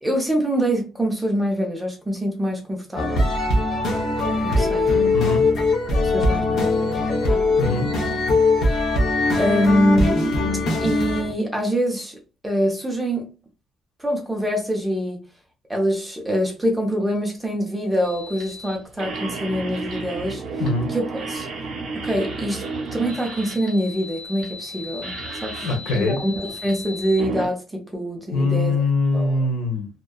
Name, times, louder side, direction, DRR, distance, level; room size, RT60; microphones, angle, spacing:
voice 1, 0.0-3.3 4.4-4.9 6.0-7.4 9.4-10.4 10.8-12.2 12.4-13.3 14.0-15.2 15.7-20.4 20.9-21.5 21.9-22.6 22.9-25.1 25.4-28.9 29.1-29.5, equal, 5° right, 0.6 m, -24 dB
sound 1, 3.0-11.3, left 2 dB, 50° left, 0.6 m, -21 dB
voice 2, 5.1-5.4 7.6-7.9 20.6-20.9 25.6-26.2 28.3-29.9, left 3 dB, 85° left, 0.9 m, -22 dB
sound 2, 18.0-27.5, right 2 dB, 50° right, 0.7 m, -33 dB
2.7 x 2.1 x 2.2 m
cardioid pair, 175°, 0 cm